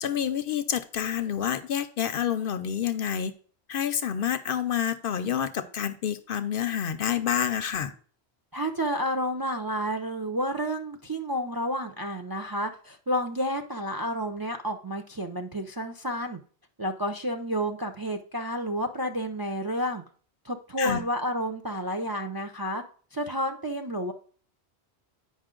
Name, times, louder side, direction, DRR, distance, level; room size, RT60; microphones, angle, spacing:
voice 1, 0.0-3.3 3.7-7.9 20.8-21.0, left 9 dB, 60° left, 12 dB, 0.7 m, -28 dB
voice 2, 8.5-16.4 16.8-20.0 20.4-22.8 23.1-24.1, equal, 30° right, 4 dB, 0.4 m, -30 dB
8.8 x 5.3 x 3.7 m, 0.43 s
omnidirectional pair, 1.1 m